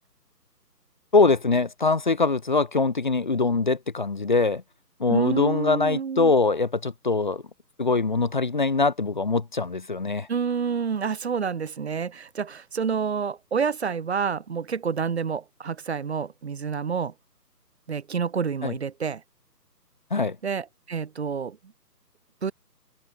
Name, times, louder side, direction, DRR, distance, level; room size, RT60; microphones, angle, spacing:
voice 1, 1.1-4.6 5.0-7.4 7.8-10.3 18.6-18.7 20.1-20.4, left 3 dB, 30° left, 0.9 m, -23 dB
voice 2, 5.1-6.3 10.3-17.1 17.9-19.2 20.4-21.6 22.4-22.5, right 6 dB, 40° right, 2.4 m, -28 dB
figure-of-eight pair, 160°, 50 cm